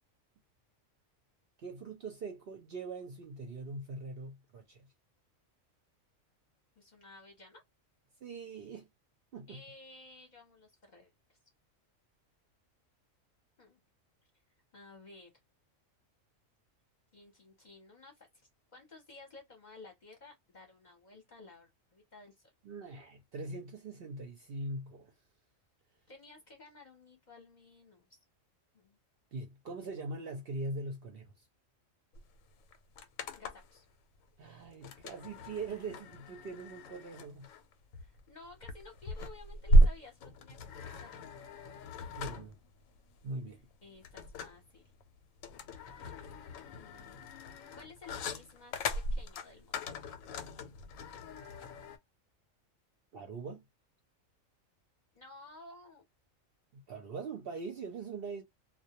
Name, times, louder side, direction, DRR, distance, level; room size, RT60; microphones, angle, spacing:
voice 1, 1.6-4.9 8.2-8.9 9.3-9.6 22.6-25.1 29.3-31.5 34.4-37.5 42.1-42.6 43.2-43.6 53.1-53.6 56.7-58.4, right 3 dB, 60° right, 0.7 m, -42 dB
voice 2, 6.8-7.6 9.5-11.4 13.6-13.8 14.7-15.3 17.1-22.5 26.1-28.2 28.7-29.0 33.3-33.9 38.0-41.8 43.8-44.9 46.7-48.8 49.1-49.8 55.1-56.0, left 3 dB, 40° left, 0.7 m, -55 dB
sound 1, 32.1-32.2 32.5-33.8 34.8-52.0, right 1 dB, 85° left, 1.0 m, -33 dB
2.2 x 2.1 x 2.8 m
omnidirectional pair, 1.4 m